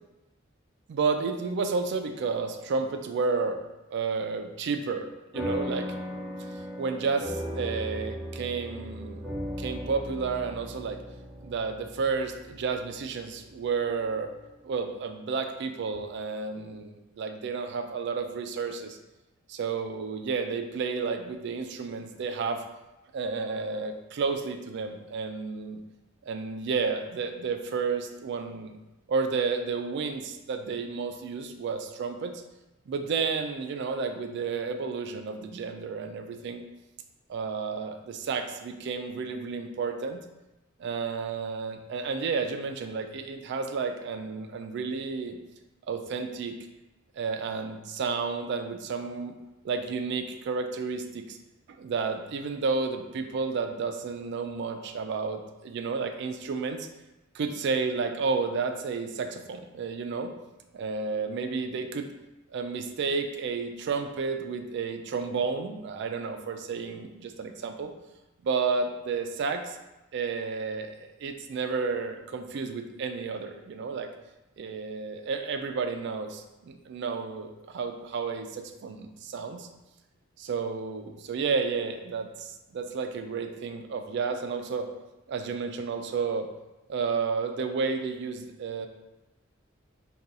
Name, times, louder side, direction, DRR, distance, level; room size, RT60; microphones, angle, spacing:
voice 1, 0.9-3.6 3.9-5.1 5.3-5.9 6.8-9.2 9.6-11.0 11.4-14.3 14.6-19.0 19.5-22.6 23.1-25.8 26.3-28.7 29.1-32.3 32.9-36.6 37.3-40.2 40.8-45.4 45.9-46.6 47.2-49.3 49.6-51.4 51.8-56.9 57.3-60.3 60.7-62.1 62.5-67.9 68.4-69.8 70.1-74.1 74.6-79.7 80.4-84.9 85.3-86.5 86.9-88.9, right 4 dB, 60° right, 7 dB, 0.3 m, -31 dB
sound 1, 5.3-14.1, equal, ahead, 0.7 m, -37 dB
2.6 x 2.3 x 3.8 m, 0.98 s
head